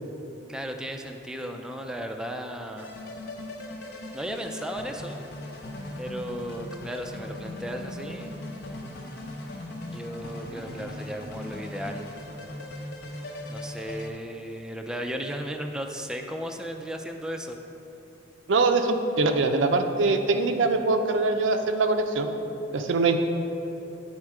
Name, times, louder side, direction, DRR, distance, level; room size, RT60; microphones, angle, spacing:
voice 1, 0.5-2.9 4.1-5.2 6.0-8.4 9.9-12.0 13.5-17.6, equal, 5° right, 3 dB, 0.3 m, -35 dB
sound 1, 2.8-14.1, left 1 dB, 60° left, 0.8 m, -39 dB
voice 2, 18.5-22.3 22.7-23.2, right 3 dB, 90° right, 6 dB, 0.5 m, -23 dB
8.7 x 4.3 x 4.7 m, 3.0 s
head